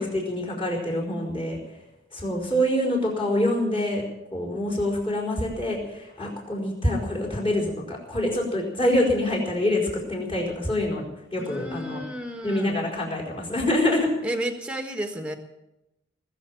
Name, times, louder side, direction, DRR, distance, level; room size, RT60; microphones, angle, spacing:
voice 1, 0.0-1.6 2.1-4.0 4.3-9.8 10.1-11.0 11.3-12.0 12.4-14.1, left 1 dB, 25° left, -3 dB, 4.5 m, -25 dB
voice 2, 11.4-12.8 14.2-15.3, right 1 dB, 5° right, 5 dB, 1.4 m, -32 dB
20.5 x 7.4 x 9.1 m, 0.91 s
head